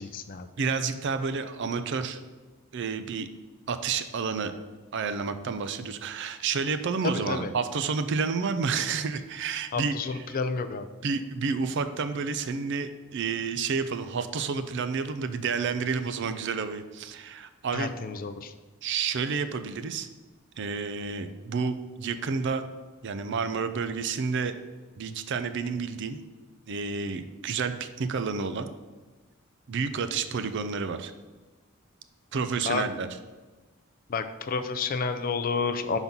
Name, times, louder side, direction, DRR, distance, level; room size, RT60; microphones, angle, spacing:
voice 1, 0.0-0.5 7.3-7.5 9.7-10.9 17.7-18.5 32.7-32.8 34.1-36.0, left 5 dB, 40° left, 10 dB, 0.4 m, -30 dB
voice 2, 0.6-2.2 2.7-3.3 3.7-4.5 4.9-10.4 11.0-17.9 18.8-20.1 20.6-22.6 23.0-24.5 25.0-26.2 26.7-28.7 29.7-31.1 32.3-33.1, right 5 dB, 55° right, 10 dB, 0.4 m, -30 dB
5.4 x 4.0 x 5.9 m, 1.3 s
head